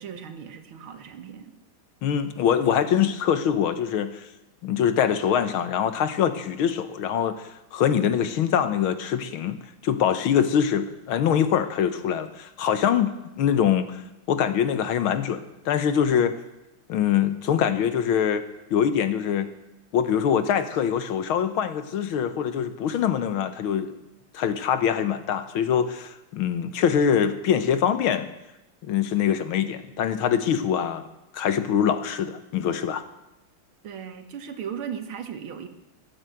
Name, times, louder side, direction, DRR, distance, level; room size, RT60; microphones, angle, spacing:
voice 1, 0.0-1.5 33.8-35.7, right 8 dB, 80° right, 8 dB, 2.1 m, -37 dB
voice 2, 2.0-4.3 4.6-14.0 14.3-16.3 16.9-19.5 19.9-23.9 24.3-28.3 28.8-31.0 31.3-33.1, left 8 dB, 80° left, 11 dB, 1.9 m, -24 dB
16.0 x 11.0 x 7.8 m, 0.93 s
omnidirectional pair, 2.3 m